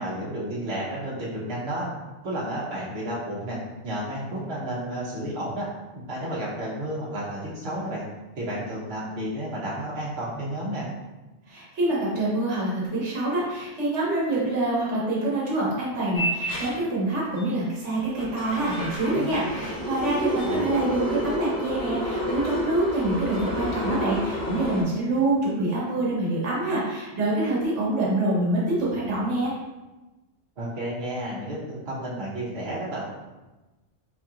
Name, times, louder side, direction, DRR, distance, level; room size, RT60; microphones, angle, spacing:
voice 1, 0.0-1.9 2.2-3.6 3.8-5.7 5.9-8.1 8.4-10.9 20.4-20.7 30.6-33.0, right 1 dB, 60° right, -7 dB, 1.2 m, -31 dB
voice 2, 11.5-29.5, right 2 dB, 80° right, -6 dB, 1.4 m, -26 dB
sound 1, 16.1-16.7 17.4-17.5 18.1-24.8, left 1 dB, 20° left, 0.6 m, -29 dB
4.5 x 2.8 x 2.4 m, 1.1 s
omnidirectional pair, 1.2 m